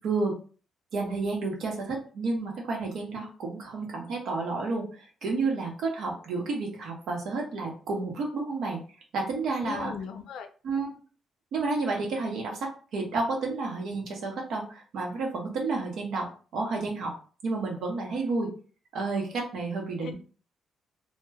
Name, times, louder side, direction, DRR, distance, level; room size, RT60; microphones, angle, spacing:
voice 1, 0.0-0.3 0.9-8.8 9.1-9.9 10.6-11.0 11.5-12.7 12.9-16.3 16.5-17.1 17.4-18.5 18.9-20.2, right 3 dB, 75° right, 0 dB, 0.8 m, -30 dB
voice 2, 9.6-10.5 20.0-20.2, left 6 dB, 75° left, 6 dB, 0.4 m, -38 dB
2.2 x 2.1 x 3.3 m, 0.39 s
cardioid pair, 90°, 0 cm